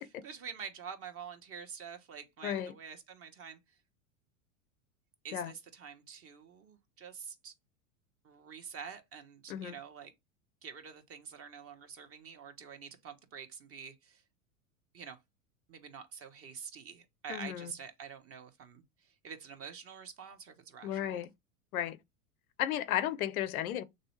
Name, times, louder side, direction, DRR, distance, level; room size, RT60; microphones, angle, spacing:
voice 1, 0.2-3.8 5.2-7.5 8.2-10.1 10.6-14.2 14.9-15.2 15.7-21.3, right 6 dB, 30° right, 1.0 m, -47 dB
voice 2, 2.4-2.7 5.3-5.5 9.5-9.8 17.3-17.7 20.8-21.3 21.7-22.0 22.6-23.8, left 11 dB, 75° left, 0.6 m, -34 dB
3.2 x 2.6 x 3.1 m
hypercardioid pair, 95°, 43 cm